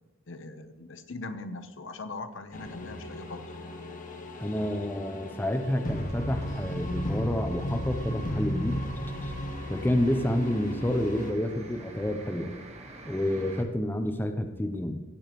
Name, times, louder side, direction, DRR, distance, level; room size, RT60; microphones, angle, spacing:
voice 1, 0.3-3.5, left 3 dB, 65° left, 9 dB, 0.9 m, -40 dB
sound 1, 2.5-11.3, left 1 dB, 40° left, 0.9 m, -35 dB
voice 2, 4.4-8.8 9.2-9.3 9.7-12.5 13.1-15.0, left 1 dB, 10° left, 6 dB, 0.6 m, -29 dB
sound 2, 5.8-13.6, right 1 dB, 30° right, 1.3 m, -48 dB
17.0 x 7.0 x 3.1 m, 1.4 s
head